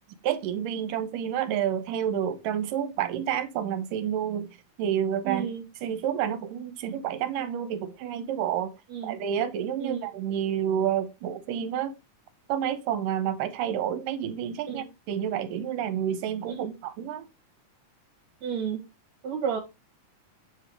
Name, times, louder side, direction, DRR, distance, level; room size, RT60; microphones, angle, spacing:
voice 1, 0.2-4.5 4.8-5.5 5.8-8.7 9.0-11.9 12.5-17.2, right 9 dB, 80° right, 2.2 m, -29 dB
voice 2, 5.3-5.6 8.9-9.2 9.8-10.1 14.7-14.9 16.6-16.7 18.4-18.8 19.2-19.6, right 8 dB, 65° right, 2.1 m, -31 dB
7.7 x 3.3 x 4.6 m
omnidirectional pair, 4.0 m